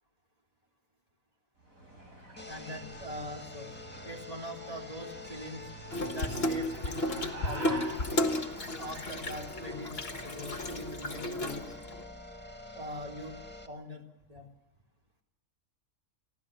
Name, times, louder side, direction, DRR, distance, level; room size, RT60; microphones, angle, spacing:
sound 1, 1.6-10.2, right 2 dB, 85° right, 6.4 m, -47 dB
sound 2, 2.4-13.7, left 1 dB, 10° left, 1.6 m, -46 dB
voice 1, 2.5-3.7 4.0-5.7 6.1-7.9 8.8-11.6 12.7-13.3 13.7-14.0 14.3-14.5, equal, 25° right, 0 dB, 3.3 m, -42 dB
Water tap faucet / Sink (filling or washing), 5.9-12.0, left 1 dB, 50° left, 1.8 m, -33 dB
28.5 x 12.5 x 9.7 m, 0.87 s
omnidirectional pair, 1.4 m